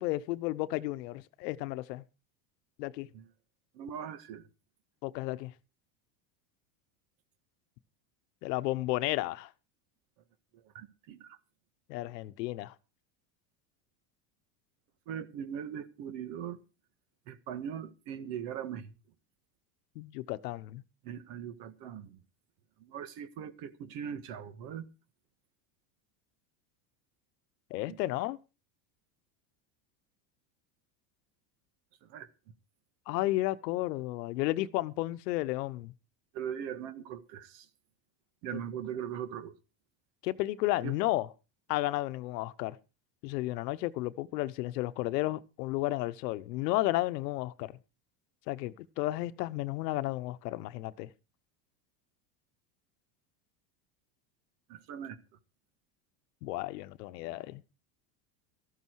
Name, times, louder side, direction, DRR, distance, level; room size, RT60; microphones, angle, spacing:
voice 1, 0.0-2.0 2.8-3.1 5.0-5.5 8.4-9.5 11.9-12.7 19.9-20.8 27.7-28.4 33.1-35.9 40.2-41.3 41.7-42.8 43.2-47.8 48.5-51.1 56.4-57.6, left 17 dB, 80° left, 1.1 m, -33 dB
voice 2, 3.7-4.4 10.5-11.4 15.1-16.6 17.3-18.9 21.0-22.2 22.8-24.9 27.9-28.0 32.0-32.3 36.3-37.7 38.4-39.5 40.8-40.9 54.7-55.2, right 9 dB, 60° right, 1.8 m, -40 dB
14.0 x 13.0 x 4.7 m
supercardioid pair, 115°, 48 cm